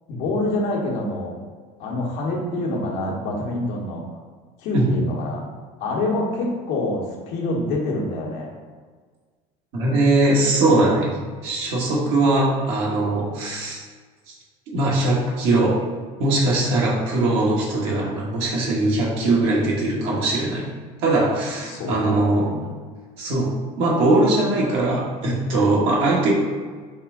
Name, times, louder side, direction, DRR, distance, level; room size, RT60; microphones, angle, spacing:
voice 1, 0.1-1.4 1.8-4.0 4.6-5.4 5.8-8.5 21.6-22.7, left 1 dB, 70° left, -2 dB, 1.1 m, -26 dB
voice 2, 9.7-11.1 11.4-13.8 14.7-15.8 16.2-20.7 21.0-22.5 23.2-26.3, right 2 dB, 75° right, -4 dB, 1.3 m, -20 dB
4.2 x 2.4 x 3.7 m, 1.5 s
supercardioid pair, 85°, 19 cm